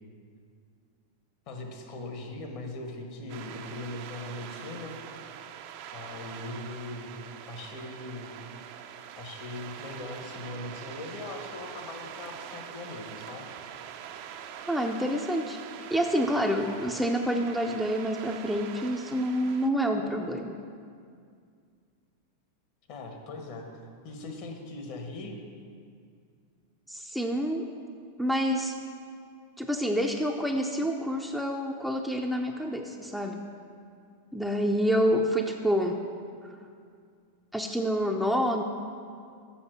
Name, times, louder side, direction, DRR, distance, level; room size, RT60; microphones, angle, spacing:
voice 1, 1.5-5.0 5.9-7.1 7.5-8.3 9.2-13.5 22.9-23.7 24.0-25.4, left 2 dB, 55° left, 3 dB, 1.5 m, -40 dB
sound 1, 3.3-19.7, right 9 dB, 55° right, 0.6 m, -44 dB
voice 2, 14.7-15.6 15.9-20.6 26.9-27.7 28.2-28.7 29.6-33.4 34.3-36.0 37.5-38.6, equal, ahead, 2 dB, 0.6 m, -28 dB
7.2 x 6.4 x 6.3 m, 2.2 s
hypercardioid pair, 100°, 0 cm